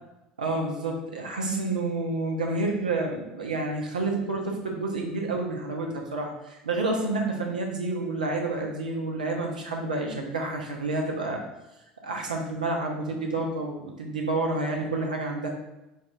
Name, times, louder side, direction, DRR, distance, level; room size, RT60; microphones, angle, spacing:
voice 1, 0.4-11.4 12.0-15.5, right 2 dB, 80° right, 1 dB, 0.7 m, -29 dB
5.2 x 2.5 x 3.4 m, 0.97 s
figure-of-eight pair, 70°, 4 cm